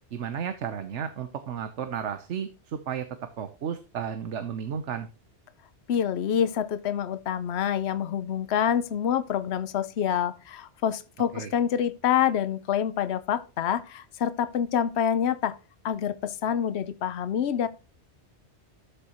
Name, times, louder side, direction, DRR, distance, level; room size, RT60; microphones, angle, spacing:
voice 1, 0.1-3.1 3.4-5.1 11.3-11.5, right 8 dB, 85° right, 1.2 m, -33 dB
voice 2, 5.9-15.5 15.8-17.7, left 9 dB, 70° left, 1.0 m, -27 dB
13.0 x 6.6 x 3.0 m
omnidirectional pair, 1.2 m